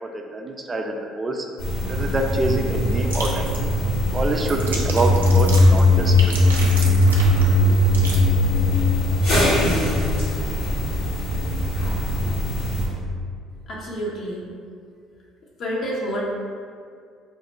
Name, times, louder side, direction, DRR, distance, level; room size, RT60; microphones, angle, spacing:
voice 1, 0.0-1.5 1.9-3.8 4.1-6.9, right 2 dB, 25° right, 2 dB, 0.4 m, -26 dB
sound 1, 1.6-12.9, left 1 dB, 80° left, 1.2 m, -20 dB
sound 2, 3.0-8.2, right 2 dB, 90° right, 0.4 m, -33 dB
voice 2, 13.7-14.5 15.6-16.2, equal, 50° left, -4 dB, 0.6 m, -28 dB
3.1 x 2.1 x 4.1 m, 2.2 s
hypercardioid pair, 55°, 0 cm